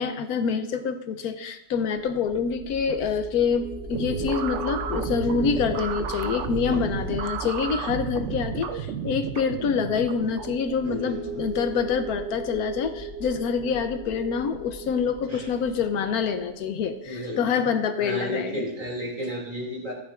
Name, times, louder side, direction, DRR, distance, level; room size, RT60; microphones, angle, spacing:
voice 1, 0.0-18.6, left 6 dB, 80° left, 9 dB, 1.2 m, -26 dB
sound 1, 1.8-16.9, right 2 dB, 15° left, 1.2 m, -37 dB
sound 2, 3.9-10.7, right 8 dB, 60° right, 0.8 m, -33 dB
voice 2, 6.5-6.8 10.8-11.5 15.3-15.4 17.0-17.4 18.0-19.9, equal, 30° right, -3 dB, 3.1 m, -33 dB
14.0 x 9.7 x 2.5 m, 0.86 s
omnidirectional pair, 1.6 m